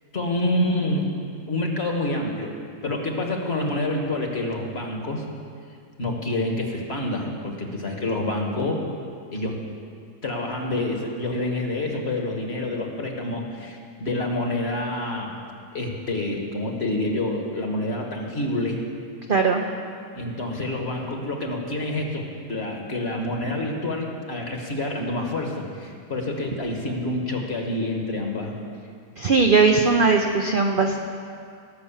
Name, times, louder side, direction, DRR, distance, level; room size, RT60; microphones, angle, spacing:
voice 1, 0.1-1.1 1.5-2.5 2.8-5.2 6.0-8.8 9.3-9.6 10.2-15.3 15.7-18.8 20.1-22.2 22.5-28.5, left 1 dB, 40° left, 2 dB, 1.5 m, -27 dB
voice 2, 19.3-19.6 29.2-31.0, right 4 dB, 55° right, 3 dB, 0.6 m, -19 dB
18.0 x 6.1 x 7.3 m, 2.3 s
omnidirectional pair, 1.7 m